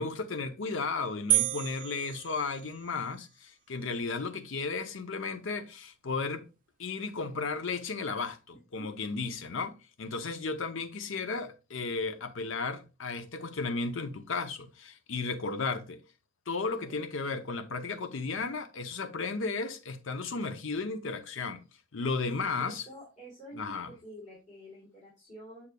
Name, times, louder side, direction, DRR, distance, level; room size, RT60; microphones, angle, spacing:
voice 1, 0.0-6.5 6.8-16.0 16.5-21.6 21.9-22.8 23.5-23.9, left 4 dB, 70° left, 0.7 m, -34 dB
sound 1, 1.3-3.1, right 14 dB, 40° right, 0.4 m, -30 dB
voice 2, 22.6-25.7, equal, 35° left, 2.9 m, -48 dB
7.0 x 6.6 x 2.2 m
head